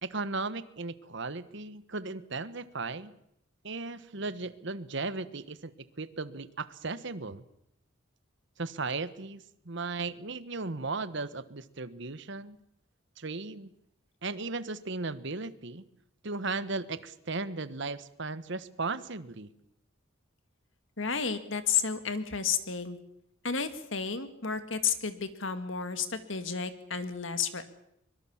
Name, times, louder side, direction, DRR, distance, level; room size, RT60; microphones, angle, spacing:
voice 1, 0.0-3.1 3.6-5.7 6.0-7.4 8.6-12.6 13.2-13.7 14.2-15.8 16.2-19.5, right 3 dB, 60° right, 14 dB, 1.2 m, -36 dB
voice 2, 21.0-23.0 23.4-27.6, left 6 dB, 70° left, 10 dB, 2.1 m, -32 dB
24.0 x 22.0 x 7.3 m, 0.75 s
head